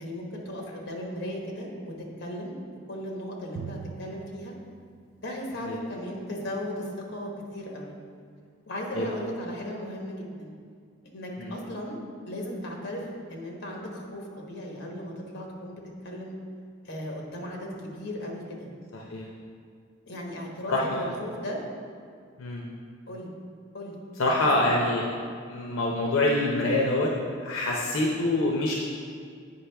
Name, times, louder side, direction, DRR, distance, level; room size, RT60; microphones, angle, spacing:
voice 1, 0.0-1.9 2.2-2.6 2.9-4.5 5.2-7.9 8.7-10.5 11.1-12.0 12.3-16.3 16.8-18.7 20.1-21.6 23.1-23.3 23.7-24.0 24.3-24.7, equal, 55° left, 0 dB, 1.1 m, -36 dB
Drum, 3.6-5.9, right 7 dB, 85° right, 0.3 m, -44 dB
voice 2, 20.7-21.1 22.4-22.6 24.2-25.1 25.5-27.1 27.4-28.7, left 2 dB, 80° left, -2 dB, 0.6 m, -25 dB
8.3 x 5.3 x 3.4 m, 2.2 s
head